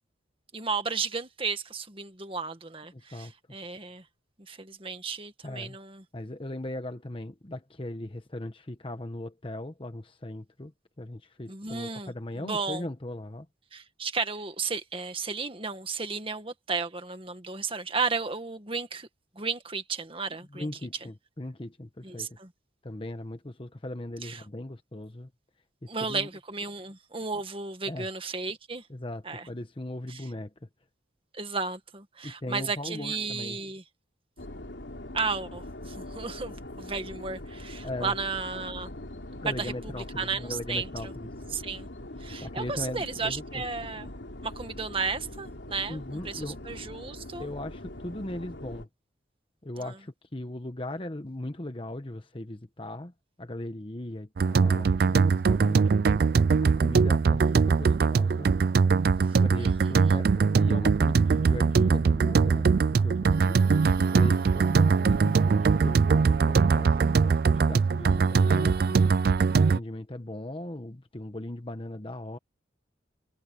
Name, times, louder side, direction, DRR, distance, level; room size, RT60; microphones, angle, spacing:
voice 1, 0.5-4.0 4.5-6.0 11.5-12.8 13.7-19.1 19.4-20.7 22.0-22.5 24.2-24.4 25.9-28.9 29.2-29.5 30.1-30.2 31.3-33.8 35.1-38.9 39.4-41.1 41.5-41.9 42.2-44.1 44.4-47.5 49.8-50.0 59.6-60.2, right 4 dB, 30° right, 1.9 m, -34 dB
voice 2, 2.9-3.3 5.4-5.8 6.1-10.7 11.0-13.5 20.5-22.4 22.8-25.3 25.8-26.3 27.9-28.1 28.9-30.5 32.2-33.6 37.8-38.1 39.4-41.3 42.4-43.6 45.9-46.6 47.4-48.9 49.6-53.1 53.4-55.9 56.6-58.5 59.2-60.3 60.6-63.7 64.0-69.0 69.7-72.4, left 1 dB, 30° left, 1.1 m, -38 dB
sound 1, 34.4-48.8, left 1 dB, 75° left, 3.3 m, -42 dB
sound 2, 54.4-69.8, right 5 dB, 55° right, 0.4 m, -22 dB
head